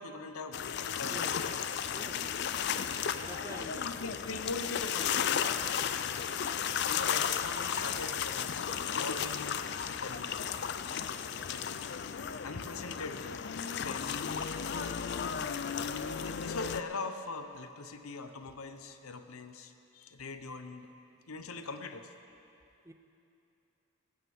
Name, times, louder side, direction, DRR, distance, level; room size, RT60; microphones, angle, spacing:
voice 1, 0.0-1.7 3.6-5.6 5.9-6.2 6.5-8.6 8.9-10.4 11.5-11.7 12.4-13.4 13.8-14.3 16.2-20.9 21.3-22.1, left 3 dB, 85° left, 8 dB, 0.8 m, -42 dB
sound 1, 0.5-16.8, left 8 dB, 50° left, 0.4 m, -34 dB
voice 2, 1.9-2.3 3.3-4.1 14.7-15.2 22.8-22.9, right 1 dB, 15° right, 6 dB, 0.5 m, -47 dB
18.5 x 15.0 x 3.6 m, 2.8 s
head